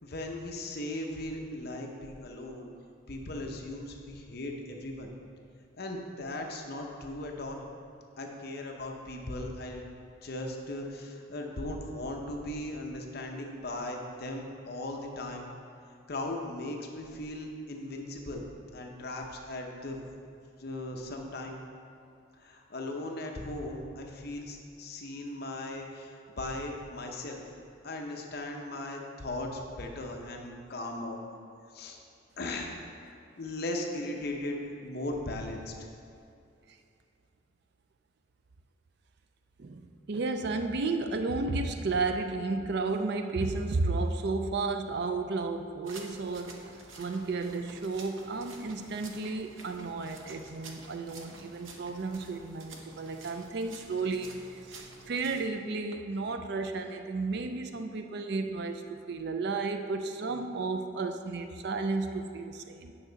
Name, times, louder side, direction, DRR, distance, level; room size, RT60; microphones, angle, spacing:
voice 1, 0.0-2.7 3.1-5.1 5.8-7.6 8.2-9.9 10.2-15.5 16.1-18.5 18.7-20.0 20.6-21.6 22.4-27.4 27.8-31.2 31.7-32.0 32.4-32.8 33.4-34.6 34.8-35.7, left 1 dB, 50° left, 1 dB, 0.8 m, -38 dB
voice 2, 39.6-46.6 47.0-62.9, right 3 dB, 55° right, 6 dB, 0.4 m, -33 dB
sound 1, 45.8-55.5, right 3 dB, 75° right, 0.8 m, -50 dB
8.9 x 6.0 x 3.9 m, 2.6 s
head